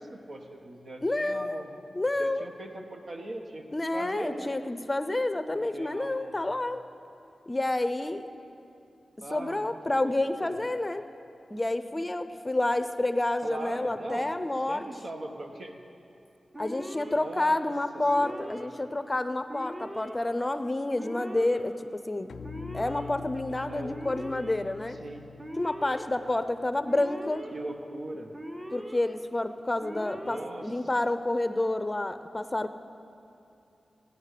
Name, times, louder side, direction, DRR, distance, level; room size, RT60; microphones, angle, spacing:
voice 1, 0.0-1.7 2.2-3.6 3.9-4.5 5.5-6.5 9.2-10.6 13.4-14.3 14.7-15.8 17.1-17.7 18.2-18.5 23.5-24.0 25.0-25.2 27.5-28.3 30.2-30.7, right 1 dB, 65° right, 2 dB, 1.5 m, -40 dB
voice 2, 1.0-1.6 1.9-2.5 3.7-6.8 7.5-8.2 9.3-11.1 11.5-14.8 16.6-22.3 22.7-25.0 25.6-27.5 28.7-32.7, left 2 dB, 25° left, 10 dB, 0.6 m, -29 dB
Alarm, 16.5-17.2 18.0-18.7 19.5-20.1 21.0-21.6 22.4-23.1 23.9-24.6 25.4-26.0 26.8-27.5 28.3-29.0 29.8-30.5, equal, 30° right, 1.4 m, -41 dB
sound 1, 22.3-27.5, left 7 dB, 85° left, 0.4 m, -46 dB
17.0 x 9.6 x 6.7 m, 2.6 s
cardioid pair, 60°, 0 cm